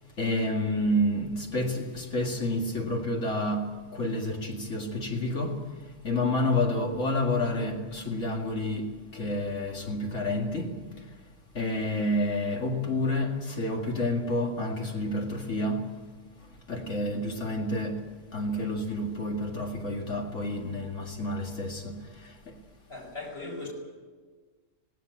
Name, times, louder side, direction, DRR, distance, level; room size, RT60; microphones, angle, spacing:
voice 1, 0.2-5.6 6.0-10.8 11.5-15.8 16.7-18.0 18.3-22.5, left 1 dB, 75° left, 2.5 m, -29 dB
voice 2, 22.9-23.7, left 3 dB, 50° left, 5.5 m, -38 dB
18.0 x 17.5 x 9.4 m
omnidirectional pair, 1.3 m